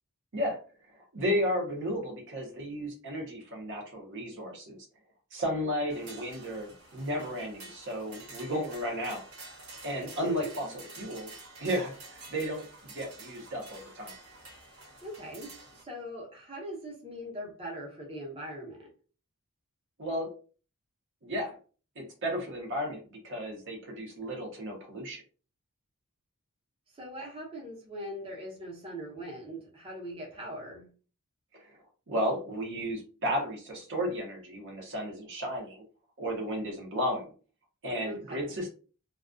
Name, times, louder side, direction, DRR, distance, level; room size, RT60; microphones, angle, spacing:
voice 1, 0.9-4.9 5.3-9.2 9.8-11.3 11.6-14.1 20.0-20.3 21.2-21.6 22.0-25.2 31.5-31.8 32.1-35.8 36.2-37.3 37.8-38.7, equal, 55° right, 0.7 m, -33 dB
sound 1, 5.9-15.8, right 3 dB, 75° right, 1.1 m, -49 dB
voice 2, 10.0-10.5 15.0-18.9 26.9-30.9 38.0-38.6, equal, 25° right, 0.8 m, -41 dB
2.3 x 2.2 x 2.5 m
head